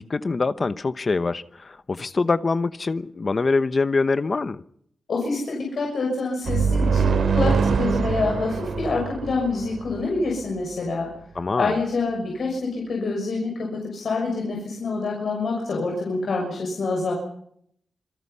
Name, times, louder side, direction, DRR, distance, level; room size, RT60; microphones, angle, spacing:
voice 1, 0.0-4.6 11.3-11.7, left 3 dB, 35° left, 1.0 m, -24 dB
voice 2, 5.1-11.1 11.6-17.1, left 3 dB, 65° left, 6.4 m, -26 dB
sound 1, 6.5-10.2, right 5 dB, 85° right, 3.1 m, -23 dB
27.0 x 23.0 x 5.6 m
wide cardioid pair, 145°, 0 cm